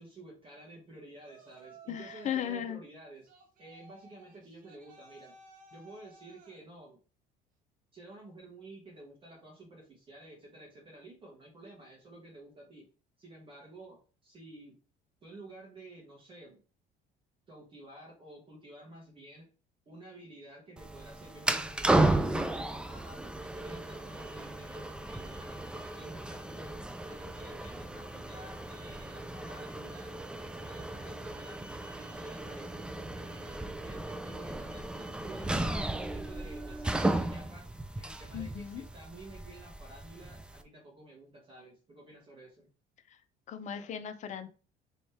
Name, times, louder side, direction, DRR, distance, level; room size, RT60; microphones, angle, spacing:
voice 1, 0.0-3.3 3.6-5.4 5.7-7.0 7.9-12.9 13.2-14.8 15.2-16.6 17.5-19.5 19.8-26.8 27.1-37.7 38.0-42.7, right 1 dB, 30° right, -2 dB, 1.4 m, -51 dB
Yell, 1.2-2.6 3.3-6.6, right 4 dB, 55° right, 1.0 m, -56 dB
voice 2, 1.9-2.8 38.3-38.8 43.5-44.5, left 9 dB, 45° left, 8 dB, 0.6 m, -36 dB
sound 1, 20.8-40.6, right 2 dB, 5° right, 0.4 m, -34 dB
3.2 x 3.2 x 4.4 m, 0.37 s
cardioid pair, 120°, 17 cm